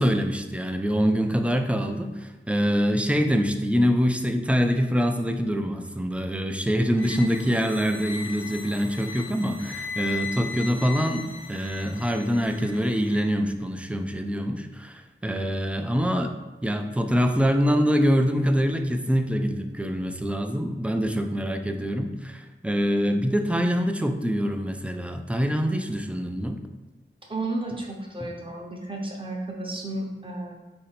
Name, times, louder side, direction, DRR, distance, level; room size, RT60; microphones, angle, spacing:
voice 1, 0.0-16.3 16.6-26.6, equal, 5° right, 5 dB, 0.3 m, -25 dB
sound 1, 6.9-13.3, left 5 dB, 80° left, 0.5 m, -38 dB
voice 2, 27.3-30.5, right 2 dB, 25° right, -1 dB, 0.8 m, -33 dB
4.1 x 2.6 x 4.1 m, 1.1 s
wide cardioid pair, 75°, 20 cm